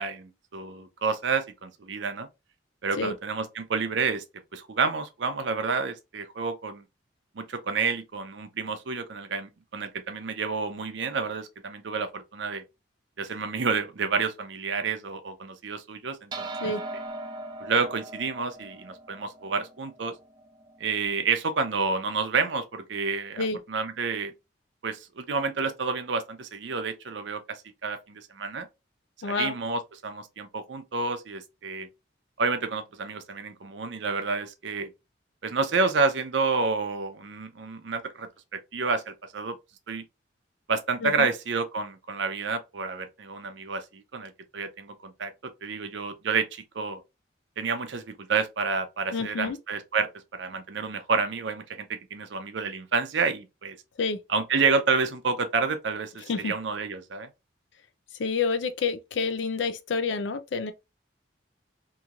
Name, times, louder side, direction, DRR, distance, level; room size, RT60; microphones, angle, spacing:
voice 1, 0.0-2.3 2.8-4.2 4.5-6.8 7.4-12.6 13.2-16.5 17.6-20.1 20.8-24.3 24.8-28.7 29.2-31.9 32.4-34.9 35.4-39.6 39.9-40.0 40.7-47.0 47.6-53.8 54.3-57.3, right 4 dB, 75° right, 0.6 m, -29 dB
sound 1, 16.3-21.0, right 2 dB, 25° right, 0.3 m, -39 dB
voice 2, 29.2-29.6 41.0-41.3 49.1-49.6 54.0-54.2 56.3-56.5 58.2-60.7, left 4 dB, 75° left, 0.4 m, -28 dB
2.9 x 2.7 x 2.4 m
head